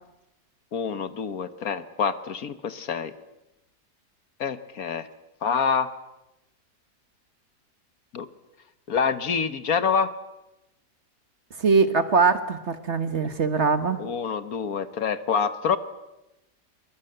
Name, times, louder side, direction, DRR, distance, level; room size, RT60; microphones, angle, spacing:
voice 1, 0.7-3.1 4.4-5.1 5.4-5.9 8.1-8.3 8.9-10.1 14.0-15.8, left 6 dB, 60° left, 12 dB, 1.5 m, -26 dB
voice 2, 11.6-14.0, right 4 dB, 45° right, 10 dB, 1.4 m, -22 dB
23.5 x 22.0 x 7.9 m, 0.96 s
omnidirectional pair, 1.7 m